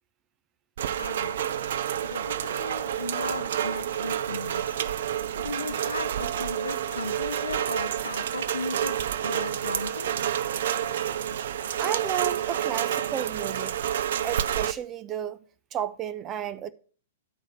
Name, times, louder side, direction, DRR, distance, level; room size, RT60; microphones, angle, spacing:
Rain, 0.8-14.7, right 10 dB, 65° right, 0.5 m, -29 dB
voice 1, 1.0-1.5 2.1-4.8 5.4-9.0 9.2-10.1 11.3-11.4, left 3 dB, 90° left, 0.7 m, -36 dB
voice 2, 11.8-13.8 14.2-15.4 15.7-16.7, right 10 dB, 30° right, 0.7 m, -32 dB
9.8 x 4.9 x 6.7 m
figure-of-eight pair, 110°, 0 cm